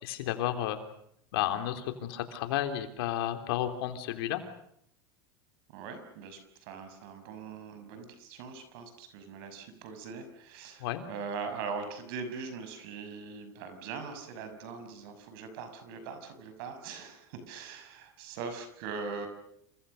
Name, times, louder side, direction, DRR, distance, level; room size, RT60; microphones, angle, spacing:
voice 1, 0.0-0.8 1.3-4.4 10.8-11.0, left 12 dB, 75° left, 7 dB, 3.5 m, -32 dB
voice 2, 5.7-19.3, right 5 dB, 70° right, 8 dB, 6.2 m, -41 dB
28.5 x 24.5 x 6.7 m, 0.72 s
supercardioid pair, 120°, 13 cm